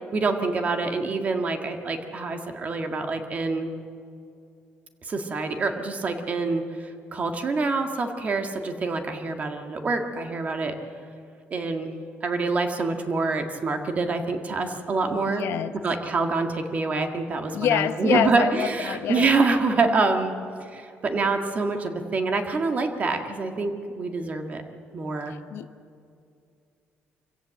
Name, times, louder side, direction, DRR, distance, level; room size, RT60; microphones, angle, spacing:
voice 1, 0.1-3.7 5.1-6.6 7.1-10.7 11.5-11.9 12.2-15.5 15.8-20.4 20.7-24.6 24.9-25.4, right 3 dB, 35° right, 5 dB, 1.8 m, -26 dB
voice 2, 15.3-15.7 17.5-19.3 25.3-25.7, left 10 dB, 75° left, 11 dB, 0.9 m, -26 dB
25.0 x 16.5 x 7.7 m, 2.5 s
cardioid pair, 140°, 4 cm